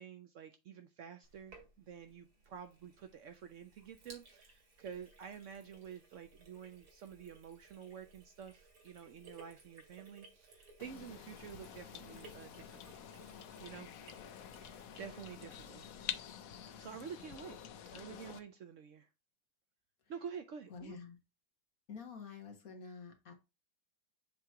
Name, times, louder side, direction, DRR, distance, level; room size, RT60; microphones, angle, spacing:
voice 1, 0.0-13.0 13.6-14.3 15.0-15.9 16.8-17.6 17.9-19.1 20.1-21.0, right 7 dB, 80° right, 0.6 m, -49 dB
Sink (filling or washing), 1.2-16.3, right 3 dB, 55° right, 2.4 m, -61 dB
sound 1, 10.8-18.4, left 9 dB, 70° left, 0.8 m, -48 dB
voice 2, 20.7-21.2 21.9-23.3, left 5 dB, 50° left, 1.6 m, -49 dB
7.3 x 2.9 x 4.5 m
omnidirectional pair, 2.0 m